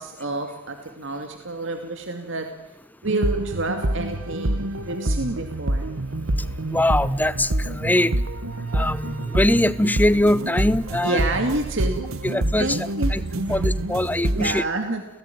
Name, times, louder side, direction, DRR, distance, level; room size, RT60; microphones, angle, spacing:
voice 1, 0.0-2.5 3.0-5.9 11.0-12.0 12.6-15.0, right 2 dB, 65° right, 5 dB, 2.4 m, -29 dB
sound 1, 3.0-14.5, right 1 dB, 90° right, 1.3 m, -26 dB
voice 2, 6.7-8.1 8.7-11.2 12.2-13.2 13.5-14.6, left 1 dB, 10° left, 16 dB, 0.8 m, -22 dB
29.5 x 18.0 x 9.3 m, 0.95 s
head